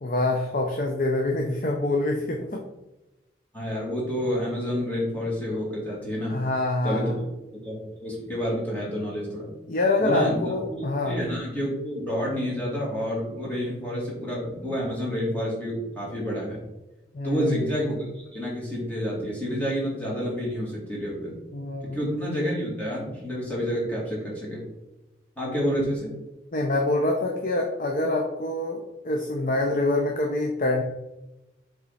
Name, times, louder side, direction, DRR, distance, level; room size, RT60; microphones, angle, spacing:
voice 1, 0.0-2.6 6.3-7.2 9.7-11.2 17.1-17.6 21.5-22.0 26.5-30.8, left 2 dB, 45° left, 1 dB, 0.7 m, -25 dB
voice 2, 3.5-6.4 6.8-7.2 7.5-9.5 10.0-10.8 11.0-16.6 17.2-21.4 21.8-24.6 25.4-26.1, equal, 10° left, -6 dB, 2.4 m, -29 dB
7.3 x 3.7 x 4.1 m, 0.98 s
head